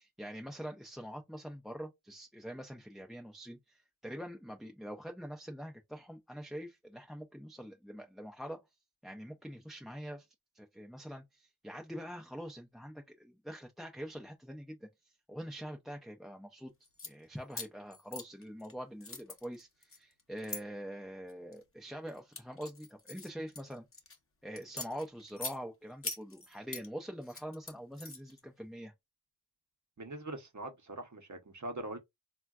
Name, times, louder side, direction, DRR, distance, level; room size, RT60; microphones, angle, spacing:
voice 1, 0.0-8.6 9.0-10.3 10.5-14.9 15.3-16.7 17.0-23.8 24.4-28.9, equal, ahead, 0.4 m, -44 dB
sound 1, 16.8-17.1 17.5-18.7 19.0-20.6 21.3-21.6 22.1-24.2 24.6-25.6 26.0-26.9 27.2-28.4, left 3 dB, 35° left, 0.7 m, -43 dB
voice 2, 30.0-32.0, right 2 dB, 50° right, 0.8 m, -42 dB
3.6 x 2.3 x 2.3 m
wide cardioid pair, 50°, 39 cm